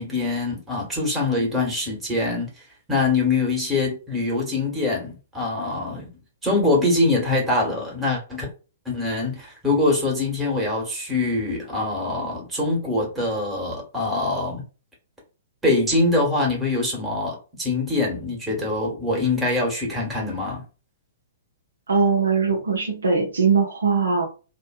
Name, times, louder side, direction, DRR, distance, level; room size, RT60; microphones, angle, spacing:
voice 1, 0.0-2.5 2.9-6.1 6.4-8.5 8.8-14.6 15.6-20.6, left 2 dB, 10° right, 1.2 m, -24 dB
voice 2, 21.9-24.3, right 5 dB, 70° right, 0.6 m, -20 dB
2.6 x 2.1 x 2.3 m
figure-of-eight pair, 115°, 0 cm